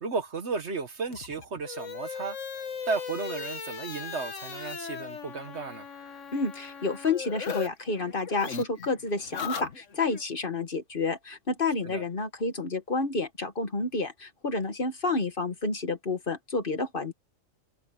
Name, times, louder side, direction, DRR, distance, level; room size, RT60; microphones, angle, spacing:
voice 1, 0.0-2.4 2.9-5.9 11.8-12.0, right 4 dB, 55° right, 1.6 m, -34 dB
sound 1, 1.1-7.7 8.0-10.2, left 6 dB, 65° left, 1.8 m, -38 dB
voice 2, 6.3-17.1, left 3 dB, 40° left, 1.6 m, -30 dB
omnidirectional pair, 1.4 m